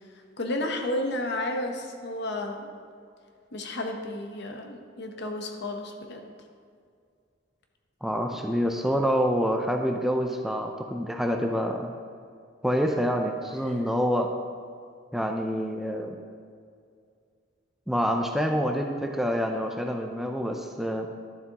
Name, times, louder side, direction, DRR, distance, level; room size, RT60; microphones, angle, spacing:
voice 1, 0.4-2.7 3.5-6.2, left 1 dB, 60° left, 3 dB, 0.9 m, -32 dB
voice 2, 8.0-11.9 12.6-14.3 15.1-16.2 17.9-21.1, equal, ahead, 3 dB, 0.4 m, -27 dB
12.0 x 7.4 x 2.9 m, 2.2 s
head